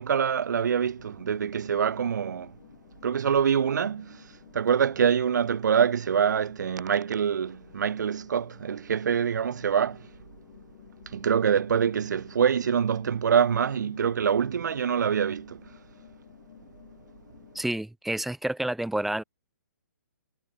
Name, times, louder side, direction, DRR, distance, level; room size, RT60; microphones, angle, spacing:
voice 1, 0.0-2.5 3.0-4.3 4.5-10.1 11.1-15.6, right 7 dB, 70° right, 1.1 m, -25 dB
sound 1, 1.0-17.6, left 12 dB, 50° left, 4.9 m, -53 dB
voice 2, 17.5-19.2, right 1 dB, ahead, 1.2 m, -29 dB
hypercardioid pair, 150°, 10 cm